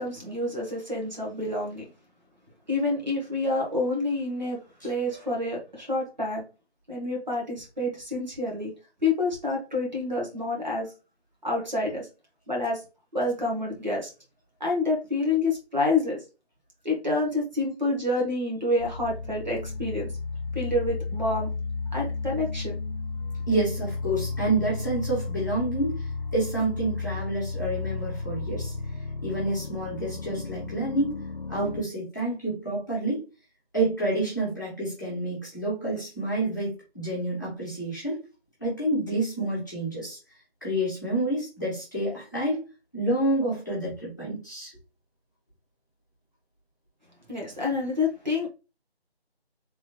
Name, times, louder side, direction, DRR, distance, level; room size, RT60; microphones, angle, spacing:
voice 1, 0.0-1.8 2.7-6.4 6.9-8.7 9.0-10.9 11.4-12.1 12.5-12.8 13.1-14.1 14.6-16.2 16.8-20.1 20.5-21.5 21.9-22.8 47.3-48.5, left 2 dB, 45° right, -1 dB, 1.5 m, -28 dB
sound 1, 18.8-31.8, left 3 dB, 50° left, 0.5 m, -33 dB
voice 2, 23.5-28.7 29.2-31.2 31.5-33.2 33.7-38.2 38.6-40.2 40.6-42.6 42.9-44.7, right 1 dB, 20° left, -8 dB, 1.3 m, -28 dB
3.5 x 3.2 x 3.1 m, 0.31 s
figure-of-eight pair, 175°, 32 cm